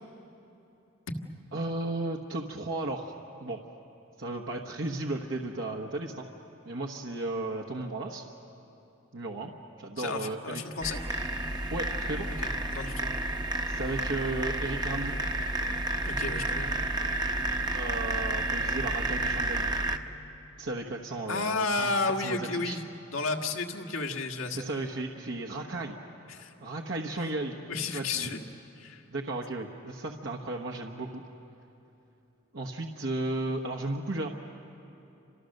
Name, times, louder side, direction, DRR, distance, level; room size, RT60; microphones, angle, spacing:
voice 1, 1.5-3.1 3.4-3.6 4.2-6.3 6.6-8.2 9.1-9.5 9.8-10.6 11.7-12.3 13.7-15.1 17.7-19.7 20.6-21.9 22.2-22.8 24.5-26.0 26.6-27.6 27.9-28.3 29.1-31.2 32.5-34.3, right 2 dB, 65° right, 1 dB, 1.3 m, -34 dB
voice 2, 10.0-11.0 12.4-13.1 16.1-16.8 21.3-22.8 23.1-24.7 26.3-26.5 27.7-28.4 28.8-29.0, left 3 dB, 75° left, 3 dB, 1.7 m, -32 dB
sound 1, 10.8-20.0, right 2 dB, 20° right, 1.0 m, -31 dB
29.5 x 26.5 x 6.7 m, 2.9 s
head